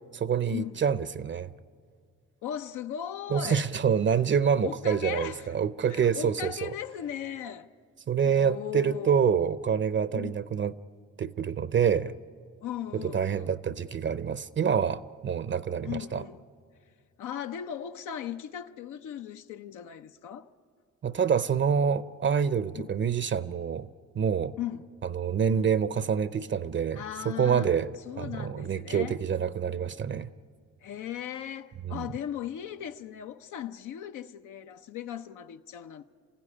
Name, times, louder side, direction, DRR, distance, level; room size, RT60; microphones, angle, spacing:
voice 1, 0.1-1.5 3.3-6.7 8.1-10.7 11.2-12.2 12.9-16.2 21.0-23.9 24.2-24.5 25.1-27.9 28.2-30.3 31.9-32.1, right 7 dB, 40° right, 0.6 m, -27 dB
voice 2, 2.4-3.7 4.6-5.5 5.8-7.7 8.2-9.4 10.1-10.4 12.6-13.5 15.8-16.4 17.2-20.5 22.8-23.0 24.6-24.9 25.5-25.7 26.9-27.7 28.1-29.2 30.8-36.0, left 10 dB, 85° left, 0.8 m, -38 dB
28.0 x 15.5 x 9.9 m
cardioid pair, 90°, 30 cm